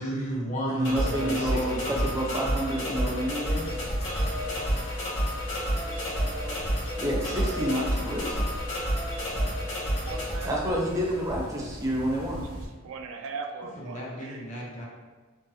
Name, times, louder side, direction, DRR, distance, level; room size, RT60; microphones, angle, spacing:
voice 1, 0.0-2.4 13.8-14.8, equal, 35° left, -2 dB, 0.6 m, -34 dB
voice 2, 0.7-3.8 7.0-8.5 10.4-12.4, right 1 dB, 15° right, -2 dB, 0.5 m, -29 dB
sound 1, 0.8-10.4, equal, 65° left, 1.2 m, -29 dB
sound 2, 3.5-12.7, equal, 85° left, 1.2 m, -41 dB
voice 3, 4.8-5.1 5.7-8.4 9.4-9.5 10.0-10.7 11.1-11.2 12.4-12.5 12.8-14.5, right 4 dB, 80° right, 5 dB, 0.3 m, -42 dB
3.8 x 2.0 x 2.7 m, 1.3 s
head